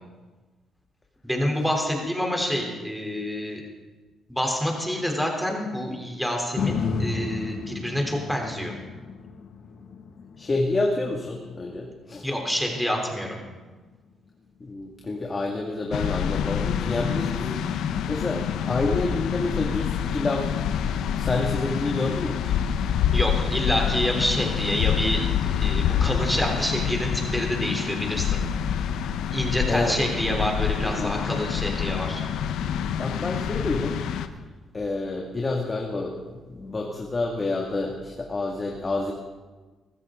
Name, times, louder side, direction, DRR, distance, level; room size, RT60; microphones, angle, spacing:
voice 1, 1.2-3.6 4.3-8.7 12.2-13.4 23.1-25.2 25.5-28.4 29.3-32.3, equal, ahead, 0 dB, 3.4 m, -27 dB
sound 1, 6.6-14.7 15.2-15.3, left 5 dB, 65° left, 1.9 m, -34 dB
voice 2, 10.4-12.3 14.6-17.6 18.1-20.5 20.8-22.5 29.7-29.9 30.8-31.2 33.0-34.0 34.7-39.1, left 2 dB, 30° left, 0 dB, 2.1 m, -28 dB
sound 2, 15.9-34.3, left 8 dB, 80° left, 0.9 m, -27 dB
22.5 x 15.0 x 3.8 m, 1.3 s
cardioid pair, 90°, 0 cm